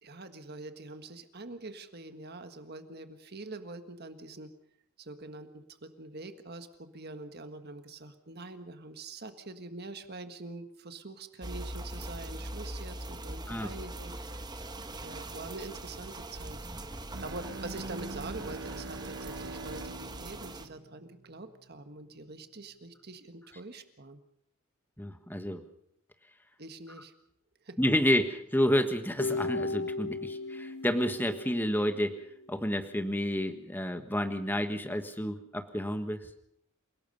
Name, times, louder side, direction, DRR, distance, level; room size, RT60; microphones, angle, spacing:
voice 1, 0.0-4.5 5.0-14.1 15.0-16.6 17.2-24.2 26.6-27.1 27.6-27.8, right 2 dB, 45° right, 8 dB, 1.6 m, -44 dB
sound 1, 11.4-20.7, right 1 dB, 20° right, 1.1 m, -41 dB
Bowed string instrument, 17.0-21.9, right 2 dB, 65° right, 1.0 m, -44 dB
voice 2, 25.0-25.6 27.8-32.2 32.5-36.3, equal, 10° left, 7 dB, 1.5 m, -30 dB
sound 2, 29.2-32.4, left 2 dB, 50° left, 2.6 m, -36 dB
28.5 x 18.0 x 5.4 m, 0.74 s
head